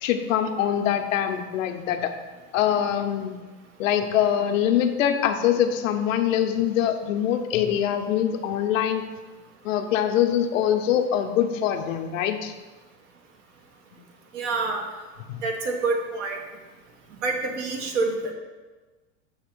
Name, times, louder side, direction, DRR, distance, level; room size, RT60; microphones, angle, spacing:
voice 1, 0.0-2.1 2.5-3.4 3.8-9.0 9.6-12.5 15.3-15.4, left 10 dB, 80° left, 6 dB, 0.8 m, -23 dB
voice 2, 14.3-14.8 15.4-16.4 17.2-18.3, right 3 dB, 60° right, 3 dB, 1.3 m, -27 dB
7.1 x 2.9 x 5.9 m, 1.3 s
supercardioid pair, 140°, 38 cm